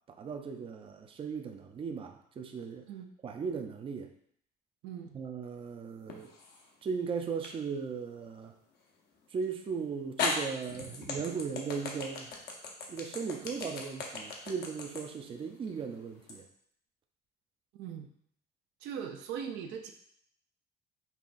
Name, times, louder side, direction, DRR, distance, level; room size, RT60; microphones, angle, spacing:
voice 1, 0.1-2.9 3.2-4.1 5.1-6.3 6.8-8.5 9.3-12.3 12.9-16.5, right 5 dB, 30° right, 5 dB, 0.4 m, -37 dB
voice 2, 4.8-5.2 17.8-18.1 18.8-19.9, right 8 dB, 85° right, 4 dB, 0.5 m, -40 dB
sound 1, 6.1-6.7 7.4-7.6 9.4-9.5 10.2-16.4, left 4 dB, 70° left, 0.8 m, -37 dB
5.6 x 2.3 x 2.5 m, 0.66 s
cardioid pair, 110°, 17 cm